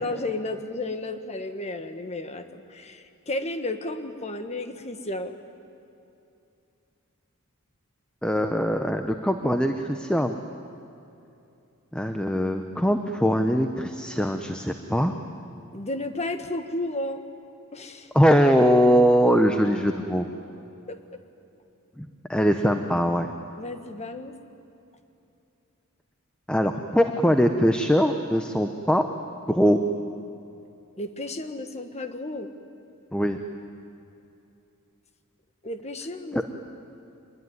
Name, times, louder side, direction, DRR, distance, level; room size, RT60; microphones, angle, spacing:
voice 1, 0.0-5.3 15.7-17.2 17.7-18.1 20.9-21.2 23.6-24.3 31.0-32.5 35.6-36.4, left 2 dB, 30° left, 8 dB, 1.5 m, -33 dB
voice 2, 8.2-10.4 11.9-15.1 18.1-20.3 22.0-23.3 26.5-29.1 29.5-29.8 33.1-33.4 36.3-36.4, equal, 5° left, 6 dB, 0.9 m, -22 dB
25.0 x 21.5 x 9.6 m, 2.7 s
head